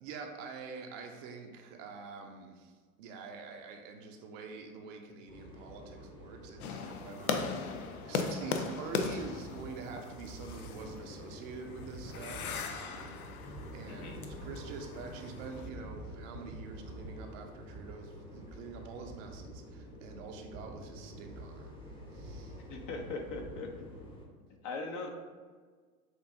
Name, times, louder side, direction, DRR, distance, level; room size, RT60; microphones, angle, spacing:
voice 1, 0.0-22.6, right 5 dB, 60° right, 3 dB, 0.7 m, -46 dB
sound 1, 5.3-24.3, equal, 10° left, 0.8 m, -47 dB
sound 2, 6.6-15.7, left 5 dB, 80° left, 0.6 m, -39 dB
voice 2, 13.9-14.2 22.7-23.9 24.6-25.1, left 3 dB, 45° left, 2 dB, 0.8 m, -40 dB
6.2 x 2.6 x 2.6 m, 1.5 s
hypercardioid pair, 90°, 44 cm